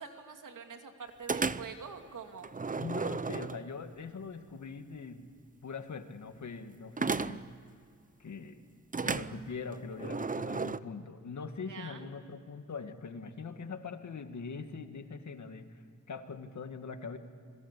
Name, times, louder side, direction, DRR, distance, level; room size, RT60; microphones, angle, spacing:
voice 1, 0.0-2.5 11.6-12.1, right 5 dB, 85° right, 5 dB, 2.5 m, -45 dB
sound 1, 1.3-1.9 2.4-3.9 7.0-7.6 8.9-10.8, right 4 dB, 25° right, 0.7 m, -34 dB
voice 2, 2.7-5.3 5.6-7.4 8.2-8.6 9.0-17.2, left 5 dB, 65° left, 8 dB, 1.9 m, -42 dB
28.5 x 22.0 x 8.3 m, 2.2 s
cardioid pair, 75°, 31 cm